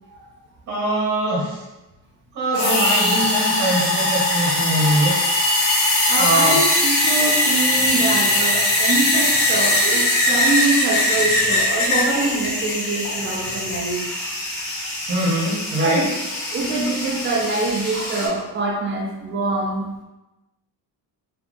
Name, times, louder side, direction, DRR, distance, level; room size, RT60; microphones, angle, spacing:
voice 1, 0.7-1.6 2.3-5.1 6.2-6.6 15.1-16.0, right 1 dB, 50° right, -6 dB, 1.1 m, -22 dB
sound 1, 2.5-18.3, left 1 dB, 60° left, 1.2 m, -21 dB
voice 2, 6.1-14.3 15.8-16.1 16.5-19.9, right 3 dB, 30° right, -1 dB, 0.6 m, -24 dB
2.8 x 2.3 x 3.8 m, 1.0 s
cardioid pair, 175°, 37 cm